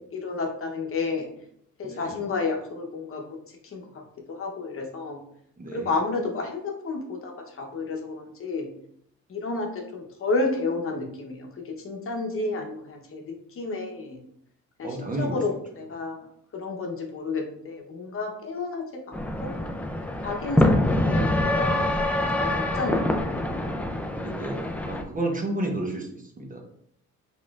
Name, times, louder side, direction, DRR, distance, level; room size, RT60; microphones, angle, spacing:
voice 1, 0.1-1.3 1.8-3.4 3.6-3.8 4.3-5.2 5.7-8.7 9.3-14.2 14.8-16.3 16.5-19.5 20.2-21.8 22.4-23.5, left 3 dB, 45° left, 2 dB, 0.9 m, -31 dB
voice 2, 1.8-2.2 5.6-5.9 14.8-15.4 24.2-26.6, right 1 dB, 25° right, 1 dB, 0.9 m, -31 dB
sound 1, 19.1-25.0, left 1 dB, 5° left, 0.4 m, -25 dB
4.1 x 3.7 x 2.4 m, 0.70 s
cardioid pair, 90°, 30 cm